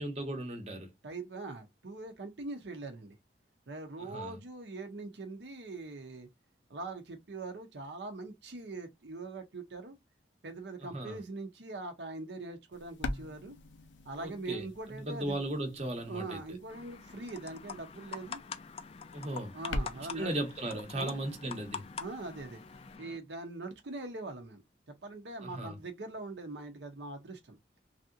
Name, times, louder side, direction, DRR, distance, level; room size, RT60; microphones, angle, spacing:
voice 1, 0.0-0.9 4.1-4.4 10.9-11.2 14.2-14.6 15.1-16.4 19.1-19.5 20.1-21.9 25.4-25.8, right 1 dB, 35° right, 0.8 m, -36 dB
voice 2, 1.0-3.2 3.7-6.3 6.7-9.9 10.4-13.5 14.0-15.5 16.1-18.4 19.5-20.4 21.0-21.2 22.0-22.6 23.0-24.6 24.9-27.6, right 3 dB, 70° right, 0.7 m, -42 dB
sound 1, 12.7-23.0, left 1 dB, 90° left, 0.5 m, -45 dB
sound 2, 16.7-23.2, left 6 dB, 30° left, 0.3 m, -45 dB
3.3 x 2.7 x 2.4 m
head